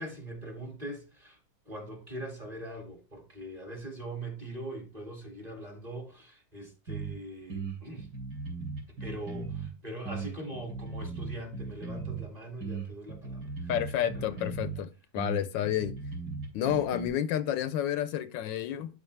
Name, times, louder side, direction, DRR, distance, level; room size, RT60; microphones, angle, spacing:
voice 1, 0.0-1.4 1.7-8.1 8.9-13.7 14.0-14.3, right 1 dB, 20° right, 2.0 m, -42 dB
sound 1, 6.9-7.1 7.5-9.7 10.0-12.3 12.6-14.8 15.1-17.1, right 4 dB, 60° right, 3.5 m, -37 dB
voice 2, 13.7-15.9 16.5-19.0, left 11 dB, 80° left, 1.2 m, -30 dB
11.5 x 4.7 x 3.2 m
omnidirectional pair, 2.1 m